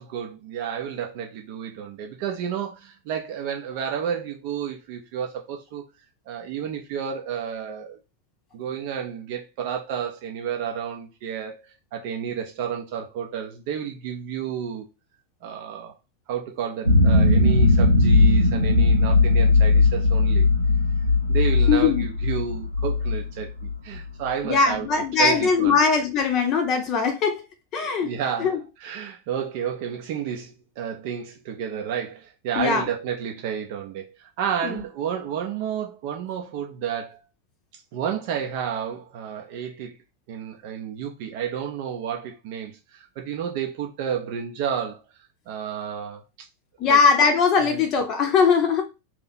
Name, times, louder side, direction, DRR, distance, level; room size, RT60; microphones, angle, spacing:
voice 1, 0.0-5.8 6.3-8.0 8.5-14.9 15.4-15.9 16.3-20.5 21.3-24.9 25.2-25.8 28.0-37.2 37.9-39.9 40.3-45.0 45.5-46.2 46.8-47.0 47.6-47.8, right 8 dB, 45° right, 0.5 m, -31 dB
sound 1, 16.9-24.0, left 3 dB, 85° left, 0.7 m, -18 dB
voice 2, 21.7-22.1 24.4-27.4 27.7-28.1 28.4-28.6 32.6-32.8 34.6-34.8 46.8-48.9, left 5 dB, 35° left, 0.6 m, -20 dB
2.8 x 2.5 x 4.1 m
figure-of-eight pair, 90°, 0 cm